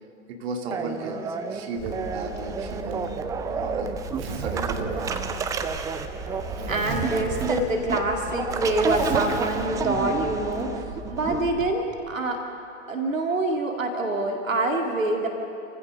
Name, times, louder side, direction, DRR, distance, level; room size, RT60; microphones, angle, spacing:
voice 1, 0.3-3.2 3.5-4.0 4.3-5.3, right 2 dB, 50° right, 3 dB, 2.6 m, -35 dB
sound 1, 0.7-11.5, right 5 dB, 10° right, 0.5 m, -30 dB
Zipper (clothing), 1.8-11.7, right 3 dB, 30° right, 2.3 m, -36 dB
voice 2, 6.7-12.4 12.9-15.3, right 1 dB, 75° right, 2 dB, 2.3 m, -26 dB
29.5 x 15.0 x 6.6 m, 2.8 s
figure-of-eight pair, 105°, 40 cm